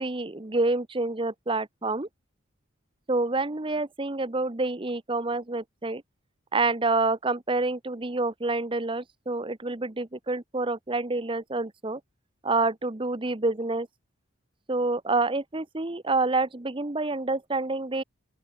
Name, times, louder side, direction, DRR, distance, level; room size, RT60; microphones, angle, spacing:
voice 1, 0.0-2.1 3.1-6.0 6.5-12.0 12.4-13.9 14.7-18.0, right 3 dB, 25° right, 0.8 m, -27 dB
open air
head